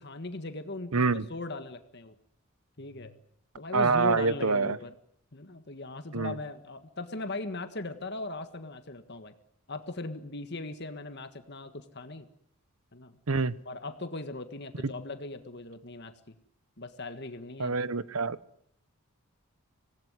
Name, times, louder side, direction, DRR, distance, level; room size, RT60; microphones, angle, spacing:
voice 1, 0.0-2.1 2.8-3.1 3.5-4.9 5.3-9.3 9.7-12.3 12.9-13.1 13.6-16.3 16.8-17.8, left 2 dB, 50° left, 1.6 m, -39 dB
voice 2, 0.9-1.3 3.7-4.8 6.1-6.3 13.3-13.6 14.8-14.9 17.6-18.4, right 4 dB, 80° right, 1.0 m, -26 dB
26.0 x 18.0 x 9.7 m
head